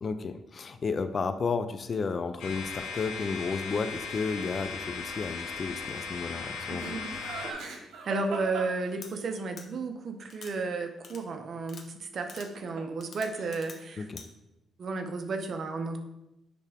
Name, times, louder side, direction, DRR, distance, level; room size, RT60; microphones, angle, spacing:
voice 1, 0.0-7.0 14.0-14.2, left 4 dB, 40° left, 10 dB, 0.5 m, -32 dB
sound 1, 2.4-7.5, left 5 dB, 85° left, 1.4 m, -38 dB
Laughter, 6.7-9.4 12.2-13.0 13.3-13.8, right 4 dB, 80° right, 1.3 m, -39 dB
voice 2, 8.0-14.1 14.8-16.0, right 3 dB, 55° right, 6 dB, 0.8 m, -33 dB
sound 2, 9.0-9.1 9.6-9.7 10.3-10.5 11.0-11.2 11.7-11.8 12.3-12.5 13.0-13.8 14.2-14.3, left 5 dB, 60° left, 1.0 m, -46 dB
9.9 x 3.5 x 3.5 m, 0.91 s
cardioid pair, 90°, 0 cm